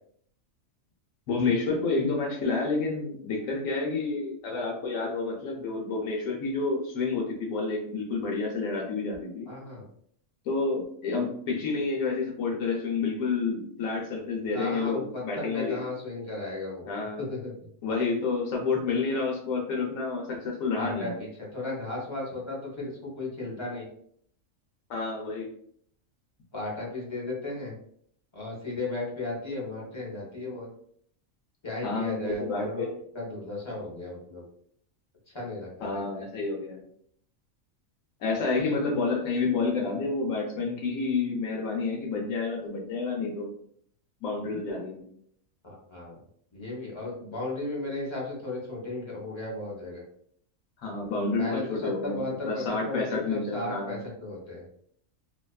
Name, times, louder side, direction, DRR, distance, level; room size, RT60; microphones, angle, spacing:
voice 1, 1.3-9.5 10.4-15.8 16.9-17.3 17.8-21.2 24.9-25.5 31.8-32.9 35.8-36.8 38.2-43.5 44.2-45.1 50.8-54.0, left 4 dB, 85° left, -1 dB, 1.0 m, -29 dB
voice 2, 9.5-9.9 14.5-16.9 17.2-17.5 20.7-23.9 26.5-27.7 28.3-30.7 31.6-32.9 33.1-34.4 35.3-36.0 38.5-38.6 45.6-46.1 46.5-50.0 51.4-54.6, left 2 dB, 30° left, -4 dB, 0.6 m, -35 dB
2.6 x 2.3 x 2.2 m, 0.65 s
omnidirectional pair, 1.4 m